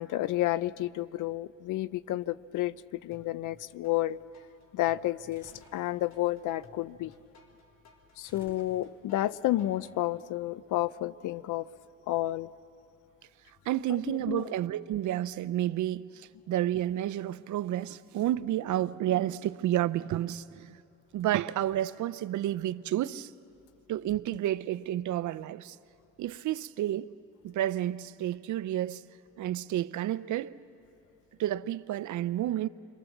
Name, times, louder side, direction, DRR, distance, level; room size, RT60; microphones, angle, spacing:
voice 1, 0.0-2.7 3.0-4.2 4.7-7.1 8.2-11.7 12.1-12.5 14.1-14.5, left 15 dB, 85° left, 0.7 m, -31 dB
sound 1, 3.1-4.0 4.3-10.0, left 3 dB, 65° left, 4.0 m, -59 dB
sound 2, 5.3-5.9 8.2-9.2, right 1 dB, 10° right, 3.8 m, -57 dB
voice 2, 13.7-20.8 21.1-23.3 23.9-25.8 26.2-27.1 27.4-29.0 29.4-30.5 31.4-32.7, right 13 dB, 75° right, 0.7 m, -30 dB
29.0 x 23.0 x 7.3 m
cardioid pair, 90°, 30 cm